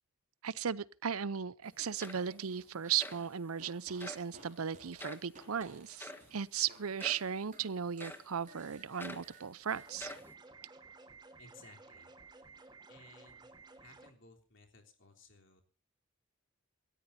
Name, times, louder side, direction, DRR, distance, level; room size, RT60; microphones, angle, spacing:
voice 1, 0.4-10.1, right 7 dB, 80° right, 0.7 m, -36 dB
sound 1, 1.6-1.7 2.0-2.5 3.0-3.2 4.0-4.3 5.0-5.3 6.0-6.3 7.0-7.3 8.0-8.3 9.0-9.3 9.9-10.3, left 1 dB, 10° left, 1.5 m, -46 dB
Fart, 1.7-3.3 3.5-6.8 7.1-9.9, right 3 dB, 35° right, 5.7 m, -58 dB
sound 2, 9.7-14.1, right 4 dB, 20° right, 1.5 m, -55 dB
voice 2, 11.4-12.1 12.9-13.5 13.8-15.6, left 3 dB, 55° left, 3.6 m, -59 dB
27.5 x 13.5 x 2.7 m
head